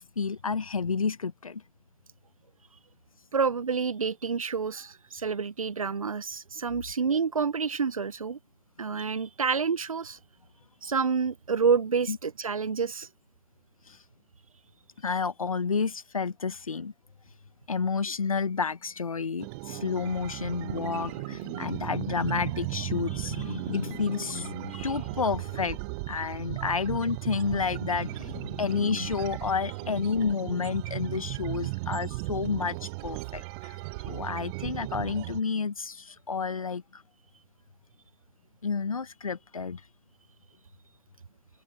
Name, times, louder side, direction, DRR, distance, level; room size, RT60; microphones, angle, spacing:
voice 1, 0.0-1.6 12.1-12.2 13.9-14.0 15.0-16.9 17.7-25.8 26.1-33.8 34.0-37.0 38.6-39.8, left 5 dB, 85° left, 1.3 m, -30 dB
voice 2, 3.3-8.4 8.8-10.2 10.8-13.1, right 5 dB, 85° right, 0.7 m, -28 dB
sound 1, 19.4-35.4, right 27 dB, 50° right, 0.9 m, -36 dB
open air
figure-of-eight pair, 90°, 17 cm